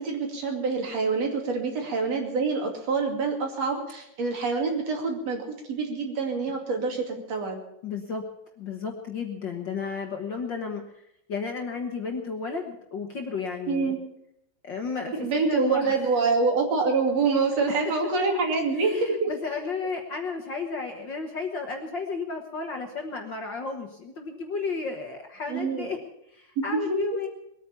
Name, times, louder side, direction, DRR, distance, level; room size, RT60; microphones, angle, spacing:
voice 1, 0.0-7.6 13.7-14.0 15.2-19.3 25.5-25.9 26.6-26.7, right 4 dB, 60° right, 2 dB, 3.7 m, -26 dB
voice 2, 7.8-8.2 8.6-11.0 11.3-14.0 14.6-16.0 18.7-26.0 26.3-27.3, left 4 dB, 50° left, 3 dB, 1.7 m, -33 dB
21.0 x 9.4 x 7.1 m, 0.79 s
omnidirectional pair, 3.3 m